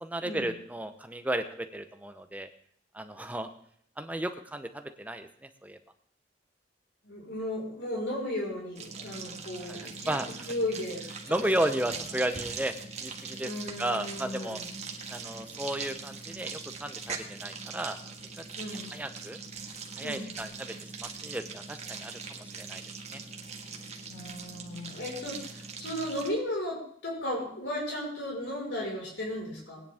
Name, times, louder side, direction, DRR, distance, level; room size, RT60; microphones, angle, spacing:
voice 1, 0.0-2.5 2.9-3.5 4.0-5.8 9.7-10.3 11.3-13.5 13.8-14.6 15.1-18.0 18.9-19.4 20.0-22.8 23.1-23.2, right 1 dB, 10° right, 8 dB, 0.8 m, -34 dB
voice 2, 7.0-11.4 13.4-14.8 18.6-19.0 20.0-20.3 24.1-29.8, left 1 dB, 75° left, -2 dB, 4.9 m, -35 dB
sound 1, 8.8-26.3, right 4 dB, 40° right, 1.5 m, -41 dB
19.0 x 9.9 x 3.6 m, 0.64 s
head